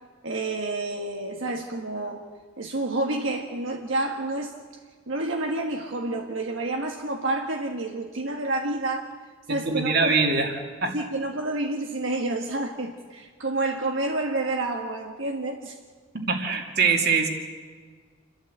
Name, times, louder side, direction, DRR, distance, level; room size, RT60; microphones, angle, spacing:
voice 1, 0.2-2.2 2.6-4.5 5.1-9.2 9.5-10.2 10.9-15.7, right 2 dB, 80° right, 2 dB, 1.7 m, -29 dB
voice 2, 9.5-10.5 10.8-11.0 16.1-17.3, right 4 dB, 55° right, 4 dB, 2.5 m, -23 dB
28.5 x 13.0 x 8.1 m, 1.5 s
head